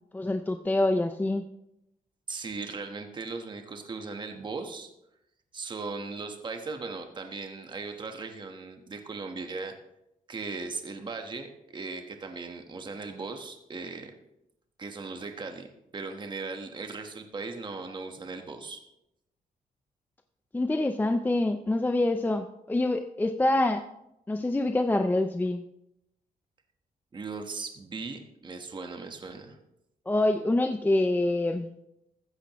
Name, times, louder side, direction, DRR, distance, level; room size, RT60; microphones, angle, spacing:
voice 1, 0.1-1.4 20.5-23.8 24.3-25.6 30.1-31.7, left 2 dB, 10° left, 7 dB, 0.5 m, -26 dB
voice 2, 2.3-4.9 5.5-9.7 10.3-14.1 14.8-15.7 15.9-18.8 27.1-29.6, right 4 dB, 30° right, 5 dB, 1.3 m, -38 dB
14.5 x 14.5 x 3.1 m, 0.84 s
wide cardioid pair, 150°, 15 cm